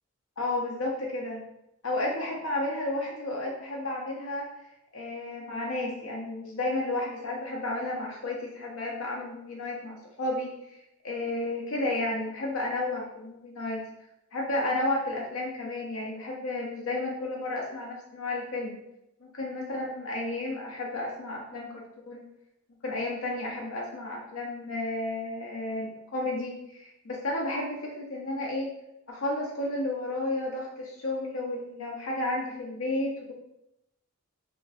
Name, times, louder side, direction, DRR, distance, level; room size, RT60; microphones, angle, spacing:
voice 1, 0.4-1.4 1.8-4.5 4.9-10.5 11.0-13.8 14.3-18.8 19.2-22.2 22.8-28.7 29.1-33.3, left 2 dB, 75° left, -2 dB, 0.7 m, -32 dB
2.9 x 2.4 x 4.0 m, 0.84 s
head